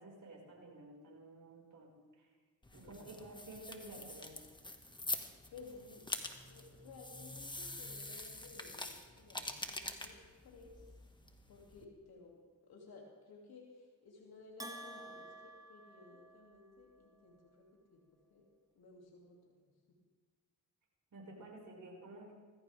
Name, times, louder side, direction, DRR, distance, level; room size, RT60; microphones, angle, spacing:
voice 1, 0.0-2.3 2.7-4.3 21.1-22.3, right 2 dB, 55° right, -2 dB, 5.4 m, -52 dB
sound 1, 2.6-11.8, left 2 dB, 10° left, 1.7 m, -45 dB
voice 2, 5.1-6.1 6.3-10.8 11.5-18.0 18.3-18.5 18.7-19.4 19.9-20.0, left 4 dB, 75° left, -1 dB, 2.7 m, -57 dB
Bell, 14.6-16.7, right 1 dB, 10° right, 1.5 m, -50 dB
20.0 x 15.0 x 3.5 m, 1.4 s
supercardioid pair, 60°, 37 cm